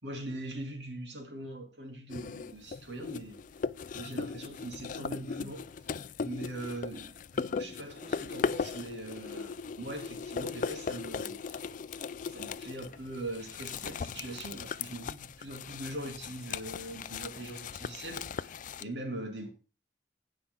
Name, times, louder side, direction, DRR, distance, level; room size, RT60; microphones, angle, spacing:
voice 1, 0.0-3.4 3.9-5.7 6.2-11.6 12.3-18.5 18.8-19.5, right 1 dB, 80° right, 2.8 m, -41 dB
sound 1, 2.1-18.8, left 5 dB, 45° left, 0.4 m, -38 dB
16.5 x 5.6 x 3.7 m
head